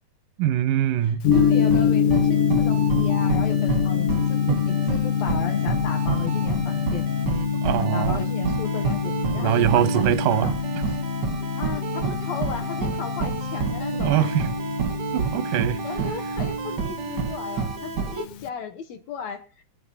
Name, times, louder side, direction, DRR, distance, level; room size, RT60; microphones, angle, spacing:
voice 1, 0.4-1.2 7.6-8.2 9.4-10.5 14.0-14.5 15.1-15.8, right 11 dB, 90° right, 2.3 m, -22 dB
voice 2, 1.0-7.0 7.6-10.5 11.6-14.3 15.5-19.6, left 6 dB, 70° left, 1.9 m, -35 dB
Gong, 1.2-18.5, left 8 dB, 90° left, 1.3 m, -25 dB
sound 1, 1.3-18.2, right 5 dB, 60° right, 1.1 m, -29 dB
24.0 x 9.5 x 2.8 m
omnidirectional pair, 3.5 m